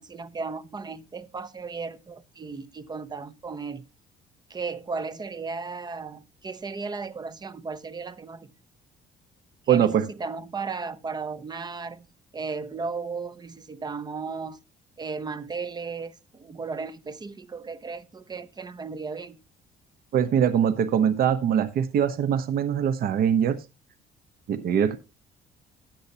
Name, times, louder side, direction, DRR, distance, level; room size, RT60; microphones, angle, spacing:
voice 1, 0.0-3.9 4.5-8.5 9.7-12.1 12.3-14.6 15.0-19.4, right 4 dB, 25° right, 0.9 m, -35 dB
voice 2, 9.7-10.1 20.1-23.6 24.5-25.0, right 8 dB, 60° right, 1.0 m, -22 dB
13.5 x 9.5 x 2.9 m
cardioid pair, 110°, 17 cm